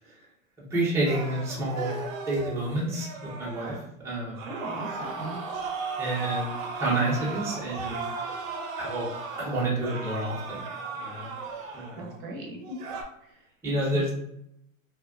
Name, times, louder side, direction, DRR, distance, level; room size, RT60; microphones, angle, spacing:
voice 1, 0.7-1.9 2.3-4.5 6.0-8.0 8.8-9.1 9.4-10.6 10.9-11.3 11.7-12.1 13.6-14.1, right 1 dB, 5° right, -6 dB, 0.7 m, -29 dB
sound 1, 1.1-3.8 4.3-12.2 12.6-13.0, right 4 dB, 75° right, 0.7 m, -36 dB
voice 2, 4.5-5.4 12.0-12.8 13.2-13.3 13.9-14.0, right 2 dB, 45° right, 0 dB, 0.7 m, -37 dB
2.8 x 2.2 x 2.3 m, 0.78 s
hypercardioid pair, 115°, 41 cm